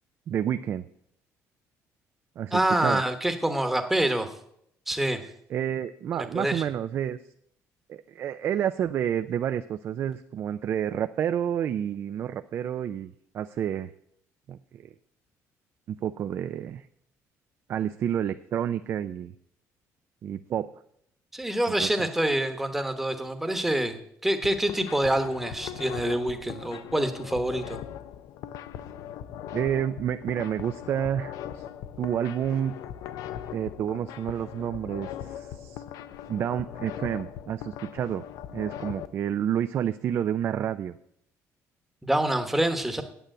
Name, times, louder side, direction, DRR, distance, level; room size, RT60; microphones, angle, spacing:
voice 1, 0.3-0.9 2.4-3.0 5.5-7.2 7.9-13.9 14.5-14.9 15.9-16.9 17.7-19.3 20.2-20.7 21.8-22.1 29.5-31.6 32.0-32.8 33.5-35.8 36.3-38.2 38.5-41.0, right 9 dB, 45° right, 10 dB, 0.4 m, -29 dB
voice 2, 2.5-4.3 4.9-5.2 6.2-6.6 21.3-27.8 42.0-43.0, right 1 dB, 5° right, 6 dB, 1.1 m, -26 dB
sound 1, 24.3-39.1, left 10 dB, 80° left, 0.6 m, -40 dB
9.1 x 8.4 x 7.6 m, 0.71 s
cardioid pair, 165°, 6 cm